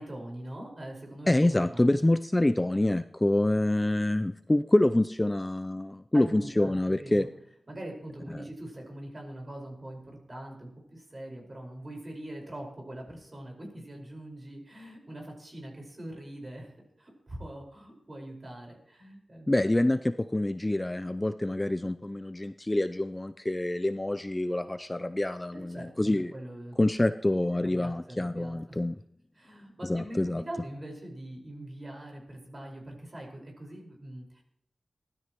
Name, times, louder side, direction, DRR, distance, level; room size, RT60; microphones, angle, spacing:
voice 1, 0.0-1.9 6.1-7.3 7.7-16.7 17.0-19.7 25.5-26.8 27.5-28.8 29.3-30.2 30.4-34.4, right 1 dB, 35° right, 0 dB, 4.7 m, -43 dB
voice 2, 1.3-7.3 19.5-26.3 26.8-29.0 29.9-30.4, left 1 dB, 20° left, 10 dB, 0.4 m, -26 dB
19.5 x 12.5 x 3.0 m, 0.74 s
wide cardioid pair, 95°, 0 cm